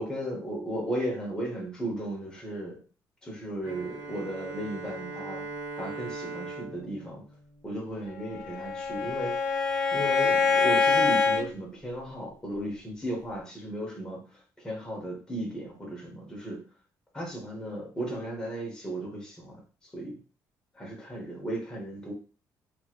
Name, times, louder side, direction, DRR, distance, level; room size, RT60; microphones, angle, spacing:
voice 1, 0.0-2.8 3.2-5.5 5.7-7.2 7.6-9.4 9.9-14.3 14.6-16.6 17.1-19.6 19.9-20.2 20.8-22.1, right 1 dB, 10° left, -2 dB, 1.1 m, -35 dB
Bowed string instrument, 3.6-8.3, right 3 dB, 20° right, 1.2 m, -40 dB
Bowed string instrument 2, 8.3-11.5, left 4 dB, 70° left, 0.7 m, -25 dB
3.0 x 2.9 x 2.4 m, 0.37 s
cardioid pair, 170°, 7 cm